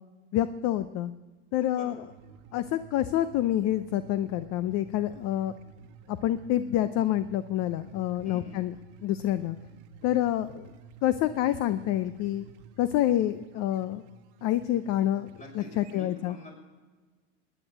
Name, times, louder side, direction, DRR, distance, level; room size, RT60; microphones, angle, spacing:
voice 1, 0.3-1.1 1.5-2.0 2.5-5.5 6.1-8.7 9.0-9.6 10.0-10.7 11.0-12.5 12.8-14.0 14.4-15.3 15.5-16.4, left 12 dB, 45° left, 13 dB, 0.7 m, -27 dB
sound 1, 2.1-16.0, right 5 dB, 65° right, 1.2 m, -52 dB
voice 2, 8.2-8.6 15.4-16.6, left 2 dB, 20° left, 1 dB, 5.8 m, -46 dB
18.0 x 10.0 x 7.5 m, 1.4 s
hypercardioid pair, 110°, 37 cm